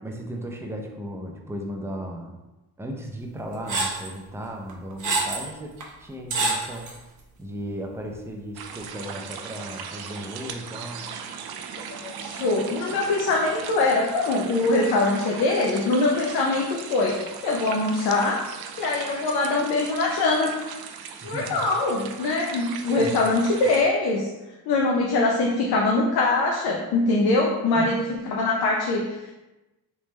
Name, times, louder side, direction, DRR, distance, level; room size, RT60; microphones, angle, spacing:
voice 1, 0.0-2.4 2.8-5.7 6.0-6.9 7.4-11.0 21.2-21.6 23.0-23.2 27.7-28.0, equal, 5° right, 1 dB, 0.4 m, -36 dB
sound 1, 3.7-4.1 4.7-5.5 5.8-5.9 6.3-7.0, right 3 dB, 50° right, 0.8 m, -26 dB
sound 2, 8.5-23.8, right 7 dB, 80° right, 0.5 m, -38 dB
voice 2, 11.9-18.5 18.8-20.5 21.2-24.3 24.7-29.3, left 2 dB, 90° left, -1 dB, 0.6 m, -23 dB
3.4 x 3.0 x 3.1 m, 1.1 s
cardioid pair, 120°, 37 cm